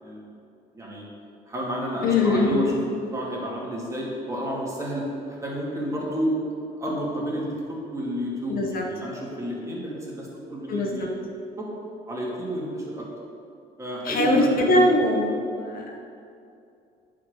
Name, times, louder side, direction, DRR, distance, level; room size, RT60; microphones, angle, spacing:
voice 1, 1.5-2.7 3.1-6.3 6.8-11.2 11.6-11.7 12.1-13.1 13.8-15.0 15.2-15.4, equal, 20° right, -4 dB, 2.5 m, -30 dB
voice 2, 2.0-2.7 8.5-8.8 10.7-11.1 14.0-15.9, left 2 dB, 60° left, 1 dB, 1.3 m, -22 dB
9.0 x 5.1 x 6.7 m, 2.5 s
cardioid pair, 110°, 17 cm